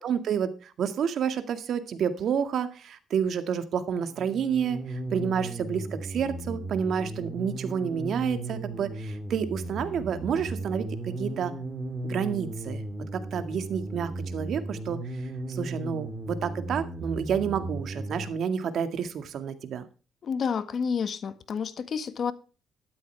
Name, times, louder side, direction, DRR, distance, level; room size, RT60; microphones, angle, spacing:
voice 1, 0.0-11.5 12.0-12.8 13.1-15.0 15.5-19.8, right 7 dB, 65° right, 2.0 m, -29 dB
sound 1, 3.9-18.3, right 2 dB, 20° right, 3.3 m, -36 dB
voice 2, 20.2-22.3, left 6 dB, 55° left, 1.5 m, -29 dB
12.5 x 12.5 x 3.4 m
cardioid pair, 90°, 0 cm